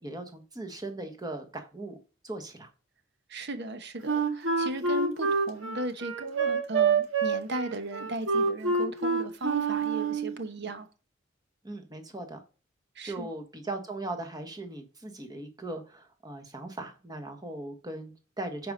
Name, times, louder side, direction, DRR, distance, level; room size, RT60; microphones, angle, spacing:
voice 1, 0.0-2.0 2.2-2.7 11.6-12.4 13.0-18.7, right 2 dB, 20° right, 1.3 m, -39 dB
voice 2, 3.3-10.9 12.9-13.3, right 2 dB, 60° right, 1.1 m, -36 dB
Wind instrument woodwind instrument, 4.0-10.3, right 4 dB, 80° right, 1.7 m, -27 dB
9.1 x 4.8 x 5.4 m
head